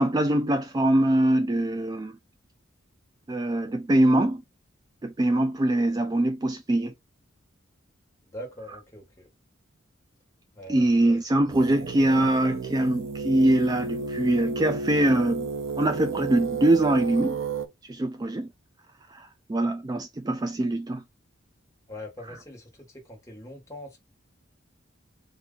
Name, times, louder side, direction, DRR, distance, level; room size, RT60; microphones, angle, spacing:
voice 1, 0.0-2.2 3.3-4.4 5.0-6.9 10.7-15.5 15.8-17.4 17.8-18.5 19.1-21.0 22.3-22.4, right 1 dB, 20° right, 0.3 m, -23 dB
voice 2, 8.2-9.3 10.5-11.2 21.9-24.0, left 1 dB, 15° left, 1.4 m, -42 dB
sound 1, 11.5-17.7, right 4 dB, 90° right, 0.5 m, -32 dB
4.2 x 2.6 x 3.8 m
head